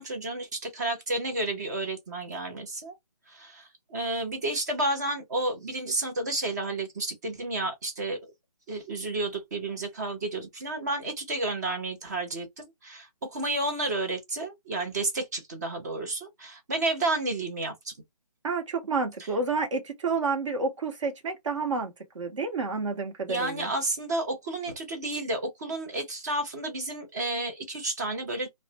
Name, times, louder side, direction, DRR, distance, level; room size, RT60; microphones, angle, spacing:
voice 1, 0.0-2.9 3.3-8.3 8.7-17.9 23.3-28.5, right 2 dB, 25° right, 0.6 m, -31 dB
voice 2, 18.4-23.7, right 4 dB, 50° right, 1.0 m, -30 dB
2.4 x 2.1 x 2.7 m
figure-of-eight pair, 155°, 20 cm